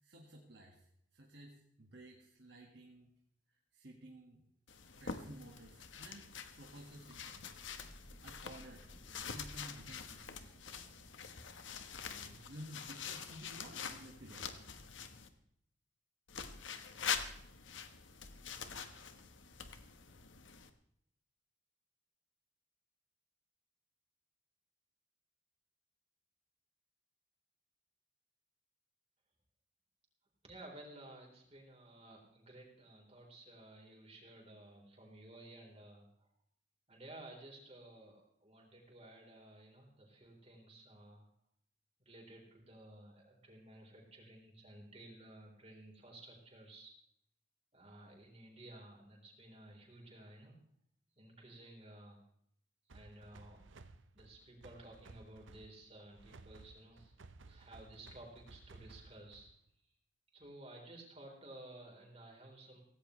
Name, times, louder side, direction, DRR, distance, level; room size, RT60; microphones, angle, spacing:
voice 1, 0.0-3.1 3.7-4.4 4.9-6.3 6.6-7.6 8.2-8.9 9.2-10.8 12.1-14.5, right 1 dB, 60° right, 0 dB, 1.8 m, -54 dB
sound 1, 4.7-15.3 16.3-20.7, left 6 dB, 80° left, 1.3 m, -45 dB
Thunder / Rain, 6.7-12.3, equal, 10° right, 3.1 m, -62 dB
voice 2, 30.4-36.3 36.9-41.3 42.0-46.9 47.7-50.6 51.2-52.2 52.9-53.6 54.1-57.1 57.5-59.5 60.3-62.8, right 1 dB, 30° right, 0 dB, 3.9 m, -55 dB
sound 2, 52.9-59.7, right 3 dB, 85° right, 0.8 m, -58 dB
16.5 x 16.5 x 3.3 m, 0.70 s
head